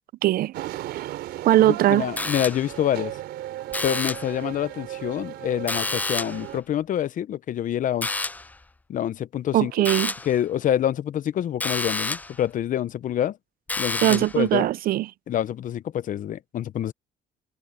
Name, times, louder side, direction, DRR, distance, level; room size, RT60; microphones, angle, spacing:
voice 1, 0.2-0.5 0.9-1.1 1.4-2.1 9.5-10.1 14.0-15.1, right 15 dB, 60° right, 0.5 m, -20 dB
sound 1, 0.5-6.6, right 14 dB, 75° right, 3.5 m, -36 dB
voice 2, 1.9-3.2 3.8-8.1 8.9-9.7 10.3-13.4 13.8-14.7 15.3-16.9, left 11 dB, 50° left, 0.8 m, -26 dB
sound 2, 2.2-2.8 3.7-4.4 5.7-6.5 8.0-8.6 9.9-10.4 11.6-12.4 13.7-14.4, left 2 dB, 10° left, 0.4 m, -29 dB
open air
cardioid pair, 110°, 17 cm